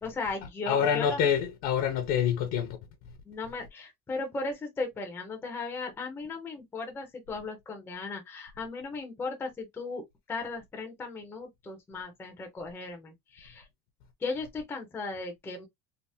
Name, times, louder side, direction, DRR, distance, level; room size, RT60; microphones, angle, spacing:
voice 1, 0.0-1.2 3.3-10.0 10.3-13.7 14.2-15.6, left 3 dB, 5° left, 0.4 m, -36 dB
voice 2, 0.7-2.8, left 8 dB, 55° left, 0.6 m, -26 dB
3.3 x 2.0 x 2.6 m
cardioid pair, 170°, 35 cm